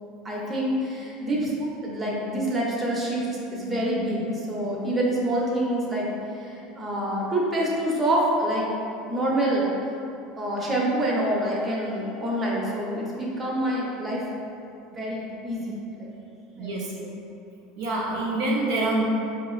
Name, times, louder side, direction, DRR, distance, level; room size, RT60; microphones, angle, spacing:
voice 1, 0.2-6.1 6.3-8.7 9.1-9.7 10.4-14.2 14.9-16.1 16.6-17.1, right 1 dB, 20° right, -4 dB, 0.8 m, -27 dB
voice 2, 16.5-16.9 17.8-19.0, right 2 dB, 75° right, -3 dB, 0.6 m, -26 dB
4.6 x 2.9 x 2.4 m, 2.8 s
supercardioid pair, 120°, 0 cm